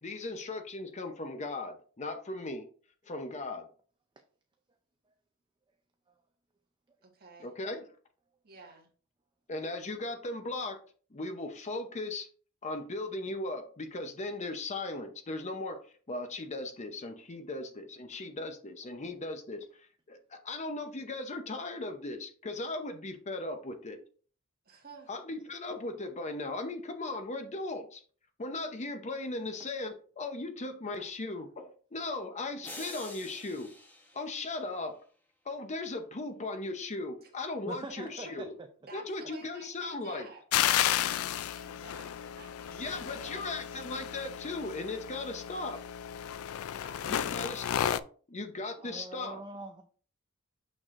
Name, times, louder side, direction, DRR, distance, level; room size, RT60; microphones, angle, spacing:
voice 1, 0.0-2.7 3.1-3.7 7.4-7.8 9.5-10.8 11.1-12.3 12.6-15.8 16.1-24.0 25.1-28.0 28.4-33.7 34.1-35.0 35.4-38.5 38.9-40.3 42.7-45.8 47.1-48.0 48.3-49.4, left 2 dB, 35° left, 0.7 m, -37 dB
voice 2, 7.0-7.5 8.4-8.9 24.6-25.1 37.2-37.3 38.9-40.4 40.7-43.5 46.8-47.3, right 3 dB, 50° right, 1.7 m, -52 dB
sound 1, 32.6-35.0, left 1 dB, 10° left, 1.1 m, -47 dB
voice 3, 37.7-38.5 48.8-49.8, right 2 dB, 20° right, 0.5 m, -44 dB
sound 2, 40.5-48.0, left 11 dB, 80° left, 0.3 m, -33 dB
6.2 x 6.2 x 2.5 m
head